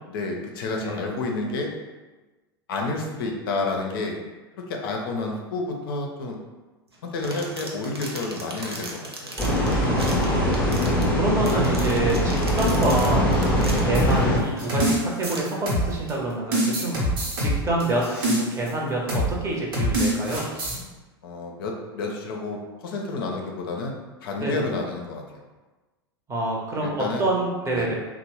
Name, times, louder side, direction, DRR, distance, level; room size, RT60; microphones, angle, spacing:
voice 1, 0.1-1.7 2.7-4.2 4.6-6.4 7.0-9.3 13.5-13.8 21.2-25.4 27.0-27.3 27.8-27.9, left 3 dB, 65° left, 1 dB, 0.5 m, -30 dB
sound 1, 6.9-14.1 14.8-14.9 15.2-15.4, right 2 dB, 85° right, 0.5 m, -38 dB
sound 2, 9.4-14.4, equal, 10° left, 0.7 m, -22 dB
voice 2, 9.8-13.3 13.8-17.0 17.4-20.5 24.4-24.7 26.3-27.9, right 2 dB, 20° right, -3 dB, 0.7 m, -27 dB
sound 3, 13.9-16.1 16.5-18.7 19.1-19.3 19.7-20.8, right 1 dB, 65° right, 0.9 m, -25 dB
2.9 x 2.0 x 2.9 m, 1.2 s
figure-of-eight pair, 90°, 13 cm